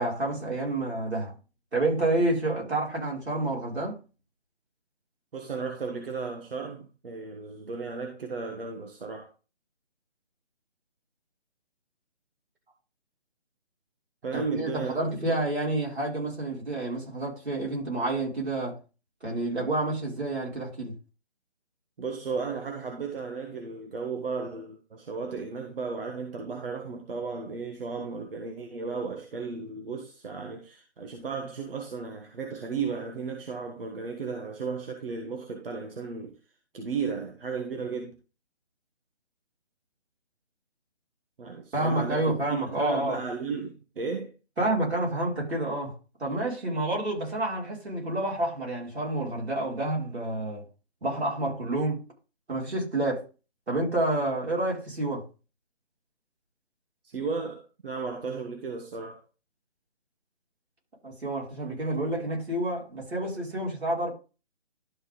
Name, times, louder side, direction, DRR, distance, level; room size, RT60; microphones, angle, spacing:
voice 1, 0.0-1.3 1.7-4.0 14.3-18.8 19.2-21.0 41.7-43.2 44.6-45.9 46.2-50.6 51.0-52.0 52.5-53.2 53.7-55.2 61.0-64.1, right 2 dB, 80° right, 5.5 m, -29 dB
voice 2, 5.3-9.3 14.2-14.9 15.3-15.4 22.0-36.4 36.7-38.2 41.4-42.3 42.7-44.3 46.7-46.8 57.0-59.2, right 5 dB, 60° right, 1.5 m, -34 dB
12.0 x 4.4 x 3.8 m
hypercardioid pair, 160°, 32 cm